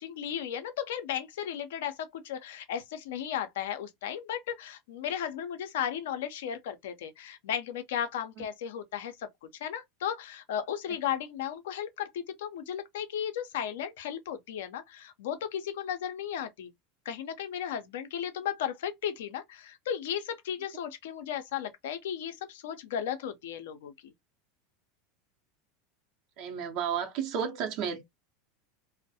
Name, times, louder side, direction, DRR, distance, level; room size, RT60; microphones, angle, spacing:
voice 1, 0.0-9.3 9.6-16.7 17.1-24.1, left 9 dB, 75° left, 0.5 m, -35 dB
voice 2, 26.4-28.0, right 7 dB, 60° right, 0.7 m, -32 dB
2.2 x 2.1 x 2.6 m
hypercardioid pair, 95°, 0 cm